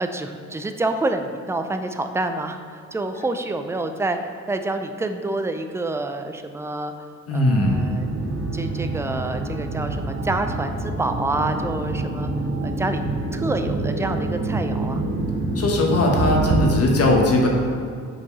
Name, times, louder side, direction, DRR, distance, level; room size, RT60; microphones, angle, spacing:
voice 1, 0.0-7.1 7.3-8.1 8.5-12.3 12.6-13.0 13.3-15.0, right 2 dB, 10° right, 7 dB, 0.5 m, -27 dB
voice 2, 7.3-7.8 15.5-17.5, left 1 dB, 50° left, 0 dB, 1.3 m, -19 dB
sound 1, 7.6-16.7, right 2 dB, 50° right, 1.1 m, -26 dB
5.8 x 4.5 x 5.5 m, 2.2 s
cardioid pair, 90°, 30 cm